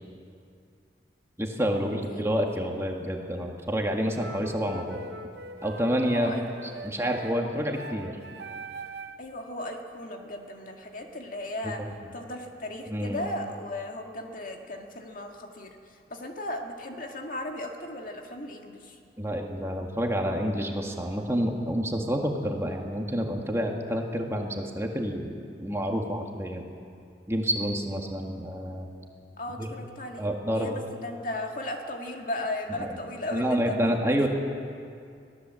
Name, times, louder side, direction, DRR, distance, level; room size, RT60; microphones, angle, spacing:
voice 1, 1.4-5.0 5.6-6.3 6.6-8.2 11.6-11.7 12.9-13.2 19.2-26.6 27.3-28.9 29.6-29.7 30.2-30.7 32.8-33.0 33.3-34.3, equal, 15° right, 1 dB, 1.8 m, -28 dB
sound 1, 4.2-9.3, right 2 dB, 65° right, 1.1 m, -42 dB
voice 2, 9.2-11.8 12.1-15.7 16.1-19.0 29.4-33.8 34.1-34.3, left 1 dB, 50° left, 2 dB, 2.1 m, -36 dB
23.0 x 16.5 x 7.6 m, 2.4 s
head